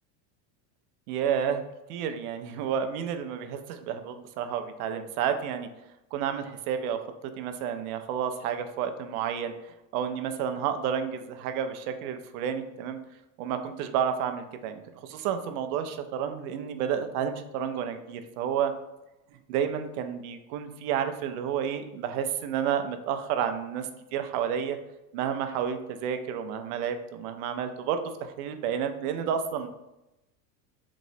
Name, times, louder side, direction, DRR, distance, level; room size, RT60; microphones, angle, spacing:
voice 1, 1.1-1.6 1.9-5.7 6.1-7.0 7.4-9.5 9.9-13.0 13.4-18.7 19.5-24.8 25.1-29.7, right 8 dB, 80° right, 8 dB, 0.5 m, -30 dB
3.0 x 3.0 x 2.7 m, 0.94 s
cardioid pair, 170°, 44 cm